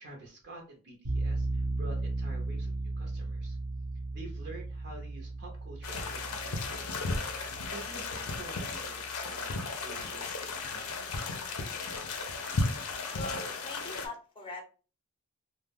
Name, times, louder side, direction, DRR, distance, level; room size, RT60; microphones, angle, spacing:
voice 1, 0.0-3.6 4.1-6.9 7.6-11.1, right 2 dB, 50° right, 0 dB, 0.6 m, -49 dB
sound 1, 1.0-9.9, right 2 dB, 75° right, 0.9 m, -36 dB
sound 2, 5.8-14.1, left 3 dB, 70° left, 0.5 m, -35 dB
voice 2, 13.1-14.6, left 2 dB, 20° left, 2 dB, 0.6 m, -41 dB
2.3 x 2.0 x 3.4 m, 0.36 s
head